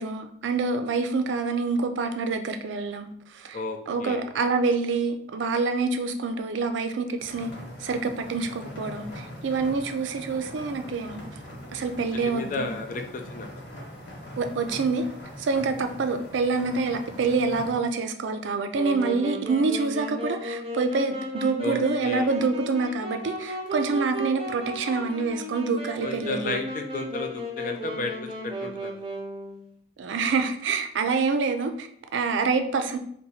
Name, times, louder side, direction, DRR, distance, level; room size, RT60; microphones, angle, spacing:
voice 1, 0.0-3.6 3.9-7.5 7.8-11.2 11.7-12.8 14.4-15.0 15.4-26.6 30.0-33.0, right 4 dB, 85° right, 7 dB, 0.4 m, -26 dB
voice 2, 3.5-4.2 12.1-13.5 21.6-22.4 26.0-28.1 28.4-28.9, left 2 dB, 45° left, 5 dB, 0.4 m, -33 dB
sound 1, 7.2-17.7, equal, 60° left, 1.2 m, -42 dB
Wind instrument woodwind instrument, 18.7-29.7, equal, 30° right, 0.5 m, -35 dB
2.7 x 2.2 x 4.1 m, 0.67 s
head